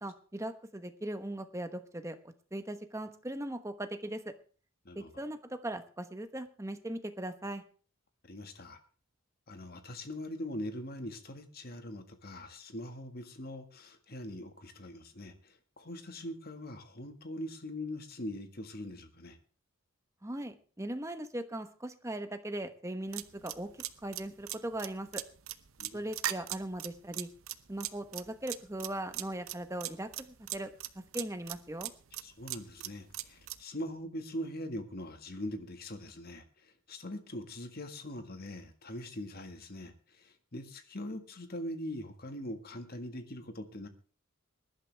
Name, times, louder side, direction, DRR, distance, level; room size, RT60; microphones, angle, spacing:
voice 1, 0.0-2.2 2.5-4.3 4.9-7.6 20.2-23.7 24.0-25.2 25.9-27.3 27.7-30.7 30.9-31.9, right 1 dB, 15° right, 8 dB, 1.1 m, -39 dB
voice 2, 4.9-5.2 8.2-8.8 9.5-19.4 25.8-26.0 32.2-43.9, left 1 dB, 45° left, 7 dB, 1.7 m, -42 dB
sound 1, 23.1-33.6, right 13 dB, 75° right, 0.8 m, -39 dB
20.5 x 11.5 x 3.4 m, 0.40 s
head